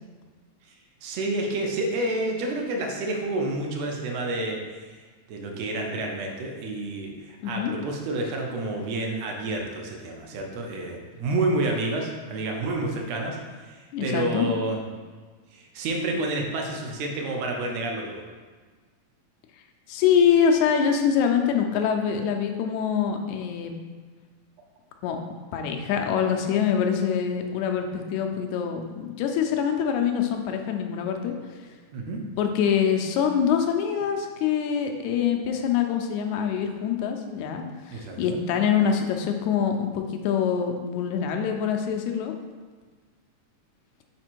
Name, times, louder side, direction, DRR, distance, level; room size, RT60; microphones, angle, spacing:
voice 1, 1.0-5.0 5.3-13.4 13.6-14.8 15.5-18.2 31.9-32.2 37.9-38.4, right 2 dB, 75° right, 1 dB, 1.8 m, -29 dB
voice 2, 13.9-14.5 19.9-23.7 25.0-25.2 25.5-31.3 32.4-42.4, left 7 dB, 80° left, 4 dB, 1.9 m, -24 dB
5.0 x 4.2 x 4.5 m, 1.4 s
omnidirectional pair, 3.4 m